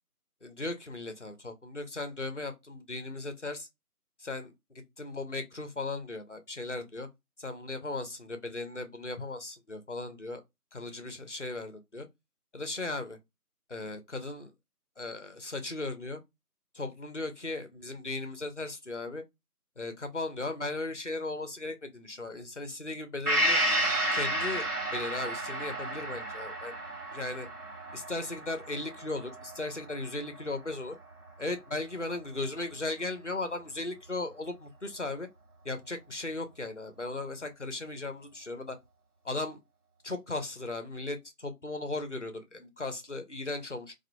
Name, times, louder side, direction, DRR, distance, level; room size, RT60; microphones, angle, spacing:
voice 1, 0.4-3.7 4.2-4.5 5.0-7.1 7.4-10.4 10.7-12.1 12.5-13.2 13.7-14.5 15.0-16.2 16.7-19.2 19.8-23.6 24.1-26.7 27.1-27.5 27.9-31.0 31.4-35.3 35.6-38.8 39.2-39.6 40.0-43.9, left 2 dB, 50° left, 0.5 m, -37 dB
Gong, 23.3-30.9 31.3-31.4, right 1 dB, 70° right, 1.4 m, -32 dB
2.4 x 2.1 x 2.6 m
figure-of-eight pair, 180°, 47 cm